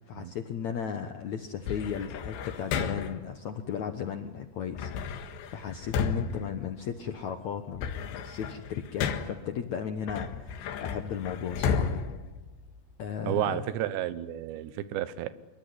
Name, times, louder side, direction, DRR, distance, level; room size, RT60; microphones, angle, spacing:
voice 1, 0.1-11.9 13.0-13.7, left 7 dB, 70° left, 7 dB, 1.7 m, -36 dB
sound 1, 1.7-3.3 4.7-7.2 7.6-9.5 10.1-13.1, left 6 dB, 85° left, 3.8 m, -33 dB
voice 2, 13.2-15.3, right 12 dB, 85° right, 14 dB, 3.3 m, -31 dB
25.5 x 22.5 x 9.8 m, 1.1 s
omnidirectional pair, 5.0 m